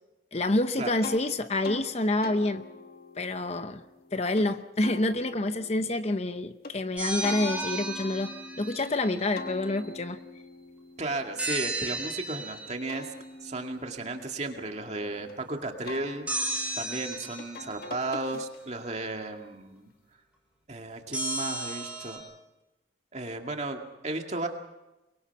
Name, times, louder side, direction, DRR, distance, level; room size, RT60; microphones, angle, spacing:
voice 1, 0.3-2.6 3.2-3.8 4.1-10.2, left 2 dB, 35° left, 10 dB, 0.8 m, -28 dB
sound 1, 1.0-1.2 1.6-1.9 2.2-4.5 4.8-6.7 7.2-8.9 9.4-12.2 12.7-15.3 15.8-18.9, left 3 dB, 55° left, 1.7 m, -44 dB
sound 2, 7.0-9.1 11.4-12.9 16.3-18.0 21.1-22.2, right 2 dB, 5° right, 4.5 m, -34 dB
voice 2, 11.0-13.1 13.4-16.3 16.8-19.9 20.7-22.2 23.1-24.5, right 2 dB, 35° right, 3 dB, 2.2 m, -34 dB
23.5 x 22.5 x 6.0 m, 1.0 s
head